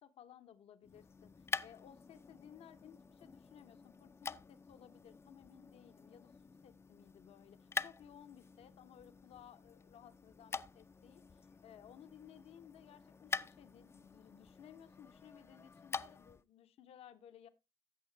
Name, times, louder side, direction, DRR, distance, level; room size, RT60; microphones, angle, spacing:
voice 1, 0.0-1.3 1.6-6.3 6.6-17.5, left 9 dB, 80° left, 0.9 m, -59 dB
sound 1, 0.8-16.4, left 5 dB, 25° left, 0.4 m, -47 dB
14.0 x 6.5 x 3.3 m
cardioid pair, 85°, 10 cm